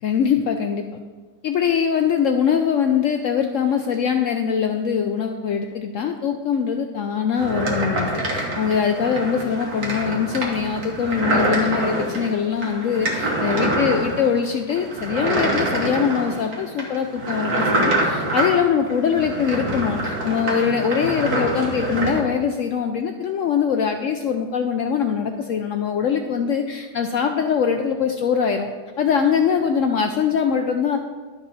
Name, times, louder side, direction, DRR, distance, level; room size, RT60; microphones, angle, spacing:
voice 1, 0.0-0.9 1.4-28.7 29.0-31.0, left 7 dB, 75° left, 5 dB, 0.7 m, -22 dB
sound 1, 7.4-22.2, right 1 dB, 60° right, 1.8 m, -25 dB
11.5 x 5.3 x 4.1 m, 1.4 s
omnidirectional pair, 1.8 m